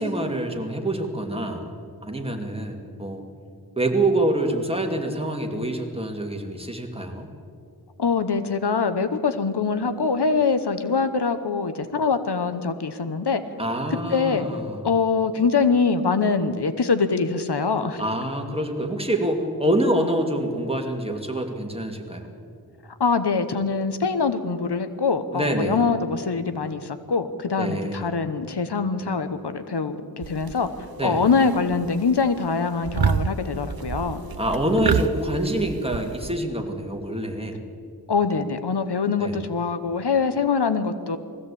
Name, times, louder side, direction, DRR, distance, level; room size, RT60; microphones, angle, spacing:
voice 1, 0.0-1.7 2.0-3.2 3.8-7.3 13.6-14.8 18.0-22.3 25.3-25.8 27.6-28.2 31.0-31.2 34.4-37.6 39.2-39.4, right 1 dB, 15° right, 2 dB, 2.5 m, -26 dB
voice 2, 8.0-13.4 13.9-14.5 14.8-18.0 23.0-30.7 31.0-34.2 38.1-41.2, left 5 dB, 85° left, 10 dB, 1.1 m, -23 dB
sound 1, 30.2-30.9 31.2-31.9 32.2-32.5 32.8-36.3, right 6 dB, 65° right, 0.8 m, -28 dB
20.5 x 15.5 x 8.5 m, 2.4 s
wide cardioid pair, 60°, 39 cm